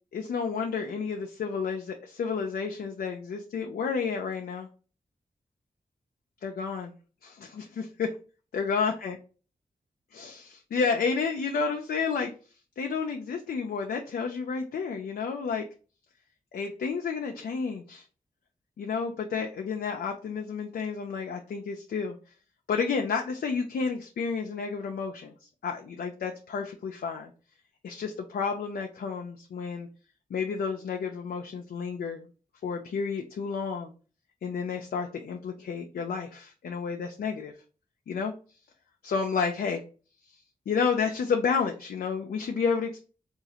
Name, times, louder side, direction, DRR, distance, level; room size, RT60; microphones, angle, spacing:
voice 1, 0.1-4.7 6.4-6.9 7.2-8.2 8.5-9.2 10.1-12.3 12.8-15.7 16.5-18.1 18.8-22.2 22.7-27.3 27.8-29.9 30.3-32.3 32.6-33.9 34.4-37.5 38.1-38.3 39.0-39.8 40.3-40.4 40.7-43.0, left 5 dB, 80° left, 2 dB, 0.5 m, -31 dB
3.8 x 2.4 x 2.8 m, 0.35 s
cardioid pair, 50°, 16 cm